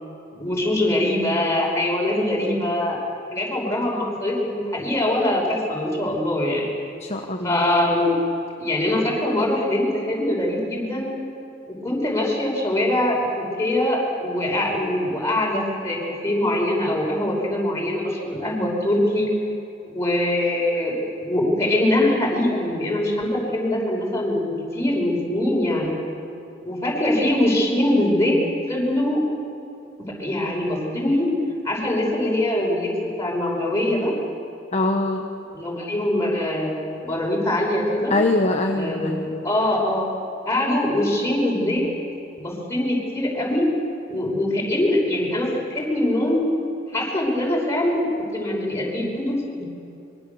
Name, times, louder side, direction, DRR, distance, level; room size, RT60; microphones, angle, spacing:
voice 1, 0.4-3.0 3.3-6.7 7.4-8.1 8.6-11.2 11.6-19.3 19.8-26.0 26.6-28.4 28.7-29.2 30.2-31.3 31.6-32.9 33.2-34.1 35.5-38.1 38.7-40.1 40.5-41.8 42.4-43.7 44.1-46.5 46.9-48.1 48.3-49.6, left 1 dB, 15° left, -3 dB, 6.0 m, -23 dB
voice 2, 7.1-7.5 34.7-35.2 38.1-39.3, left 2 dB, 35° left, 2 dB, 1.3 m, -22 dB
25.0 x 23.5 x 7.2 m, 2.6 s
head